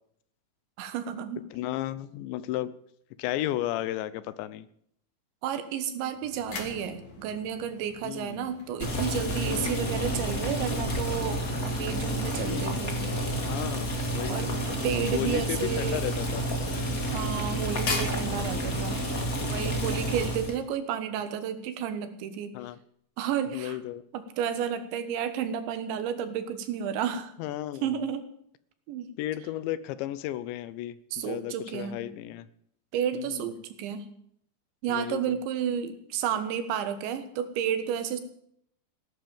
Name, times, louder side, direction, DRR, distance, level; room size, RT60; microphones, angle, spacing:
voice 1, 0.8-1.5 5.4-13.1 14.3-14.6 14.8-16.0 17.1-19.0 19.5-22.6 23.2-23.8 24.1-27.3 27.8-28.3 28.9-29.1 31.1-32.0 32.9-34.1 34.8-38.2, right 8 dB, 80° right, 10 dB, 3.8 m, -31 dB
voice 2, 1.5-2.7 3.2-4.7 8.0-8.4 9.4-9.8 12.4-12.9 13.5-14.6 15.1-16.4 17.9-18.1 22.5-22.8 23.5-24.0 27.4-28.0 29.2-32.5 33.1-33.5 34.9-35.4, left 13 dB, 80° left, 16 dB, 3.1 m, -34 dB
sound 1, 6.1-19.1, left 4 dB, 50° left, 3.7 m, -43 dB
Boiling, 8.8-20.6, equal, 30° left, 1.9 m, -30 dB
17.0 x 11.5 x 7.1 m, 0.69 s
omnidirectional pair, 5.1 m